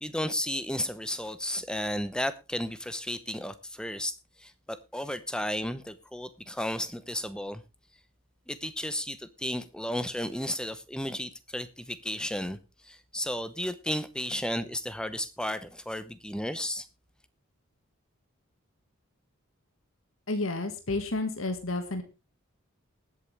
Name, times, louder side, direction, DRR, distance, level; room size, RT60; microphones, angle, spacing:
voice 1, 0.0-7.6 8.5-12.6 12.8-16.9, left 1 dB, 5° left, 0.7 m, -33 dB
voice 2, 20.3-22.0, left 2 dB, 75° left, 1.7 m, -31 dB
20.0 x 8.4 x 3.3 m
head